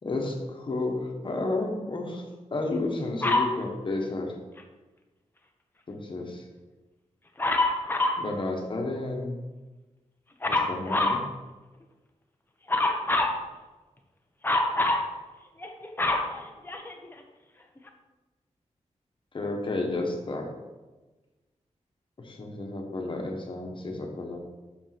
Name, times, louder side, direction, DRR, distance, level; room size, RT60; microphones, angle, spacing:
voice 1, 0.0-4.3 5.9-6.4 8.2-9.4 10.5-11.2 19.3-20.5 22.2-24.4, left 2 dB, 40° left, 2 dB, 1.2 m, -31 dB
Dog, 3.2-3.6 7.4-8.3 10.4-11.2 12.7-13.4 14.4-15.1 15.6-17.1 17.9-18.0, left 2 dB, 15° left, 0.7 m, -25 dB
6.4 x 5.4 x 5.8 m, 1.2 s
wide cardioid pair, 160°, 12 cm